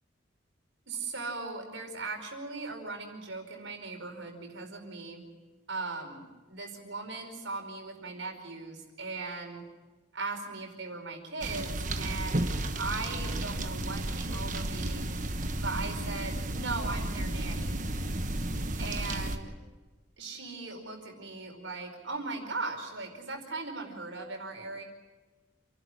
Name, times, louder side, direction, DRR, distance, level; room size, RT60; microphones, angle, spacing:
voice 1, 0.9-5.2 5.7-9.6 10.1-15.1 15.6-17.8 18.8-19.5 20.2-24.8, right 3 dB, 85° right, 3 dB, 4.9 m, -38 dB
sound 1, 11.4-19.4, right 1 dB, 45° right, 1.4 m, -33 dB
28.5 x 12.0 x 9.9 m, 1.2 s
head